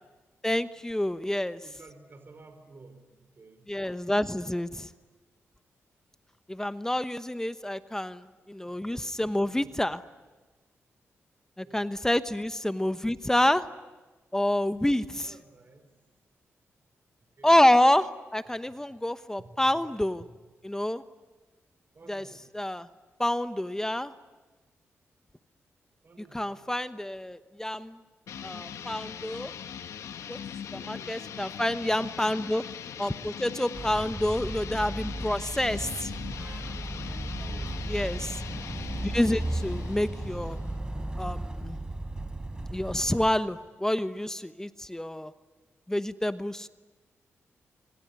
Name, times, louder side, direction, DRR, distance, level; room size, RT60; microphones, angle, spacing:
voice 1, 0.4-1.6 3.7-4.9 6.5-10.0 11.6-13.7 14.3-15.3 17.4-20.2 20.6-21.0 22.1-22.2 22.5-22.9 23.2-24.1 26.3-28.0 28.4-29.5 30.3-30.4 30.7-32.6 33.0-36.1 37.9-38.4 39.0-40.6 41.2-41.8 42.7-45.3 45.9-46.7, left 1 dB, 10° left, 11 dB, 1.0 m, -28 dB
voice 2, 1.6-3.7 8.7-8.8 9.6-9.8 11.6-11.9 15.2-15.9 17.2-17.6 19.4-19.8 20.2-20.3 21.9-22.5 26.0-26.6 30.7-31.4 35.8-36.2 37.4-38.0, right 3 dB, 45° right, 6 dB, 5.2 m, -53 dB
sound 1, 28.3-40.8, left 8 dB, 80° left, 1.1 m, -41 dB
Motor vehicle (road), 33.7-43.3, right 1 dB, 15° right, 4.2 m, -35 dB
26.0 x 23.5 x 9.8 m, 1.2 s
cardioid pair, 60°, 5 cm